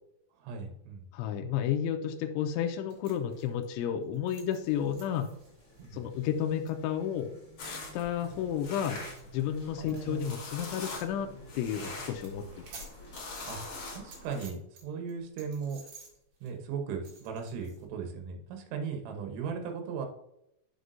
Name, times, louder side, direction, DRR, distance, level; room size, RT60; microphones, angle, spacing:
voice 1, 0.4-1.1 5.8-6.0 9.8-10.3 13.5-13.6 13.9-15.8 16.4-20.1, right 6 dB, 85° right, 4 dB, 3.6 m, -37 dB
voice 2, 1.1-5.3 5.9-7.3 7.6-9.0 9.3-12.5 12.7-12.9, left 9 dB, 85° left, 5 dB, 2.9 m, -32 dB
sound 1, 2.9-10.6 11.0-11.1 11.4-11.7 12.0-14.8 15.1-17.8, right 3 dB, 55° right, 2.7 m, -54 dB
sound 2, 4.6-13.2, left 1 dB, 10° left, 0.9 m, -55 dB
sound 3, 7.6-14.5, left 3 dB, 55° left, 1.9 m, -44 dB
8.0 x 6.9 x 2.6 m, 0.82 s
omnidirectional pair, 5.6 m